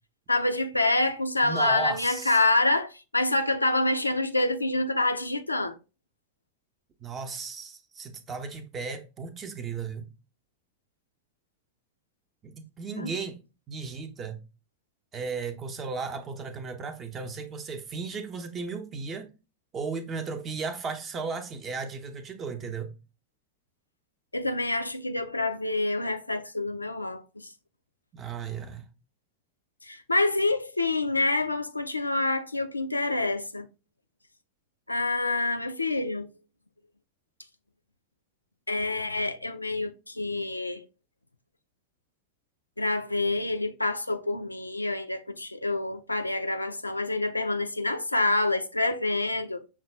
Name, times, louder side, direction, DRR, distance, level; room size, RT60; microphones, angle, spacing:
voice 1, 0.3-5.8 13.0-13.1 24.3-27.5 29.8-33.7 34.9-36.3 38.7-40.8 42.8-49.6, left 2 dB, 85° left, 0.3 m, -27 dB
voice 2, 1.4-2.4 7.0-10.1 12.4-13.4 13.7-14.4 15.1-19.3 19.7-22.9 28.1-28.9, right 5 dB, 25° right, 0.6 m, -35 dB
5.8 x 2.3 x 3.2 m
figure-of-eight pair, 90°, 0 cm